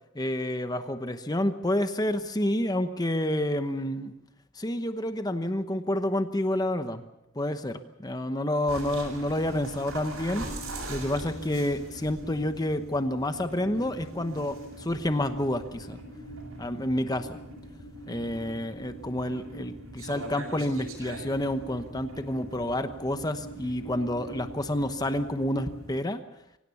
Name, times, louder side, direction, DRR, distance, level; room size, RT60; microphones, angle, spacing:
voice 1, 0.1-4.1 4.6-7.0 7.3-10.4 10.9-16.0 16.6-17.4 18.1-26.2, left 1 dB, 20° left, 9 dB, 1.0 m, -29 dB
sound 1, 8.7-26.0, right 1 dB, 90° right, 7.5 m, -41 dB
24.0 x 17.0 x 7.0 m, 0.89 s
head